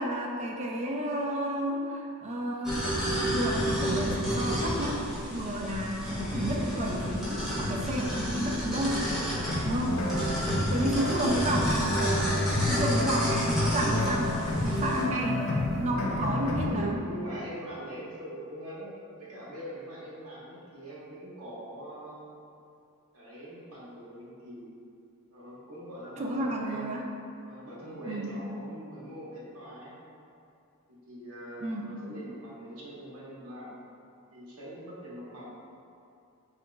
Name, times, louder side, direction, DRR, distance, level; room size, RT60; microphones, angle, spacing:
voice 1, 0.0-3.0 3.3-9.0 9.6-10.1 10.4-12.1 12.6-17.0 26.2-27.1 28.1-28.4 31.6-32.0, equal, 30° right, -1 dB, 0.3 m, -31 dB
sound 1, 2.6-15.0, equal, ahead, 0.8 m, -31 dB
sound 2, 9.3-16.7, left 1 dB, 60° left, 0.5 m, -30 dB
sound 3, 10.7-15.9, equal, 35° left, 1.0 m, -47 dB
voice 2, 16.2-18.9 19.2-22.3 23.1-24.7 25.3-26.9 27.4-29.9 30.9-33.8 34.3-35.5, right 1 dB, 75° right, -7 dB, 0.9 m, -42 dB
3.6 x 2.9 x 2.2 m, 2.5 s
head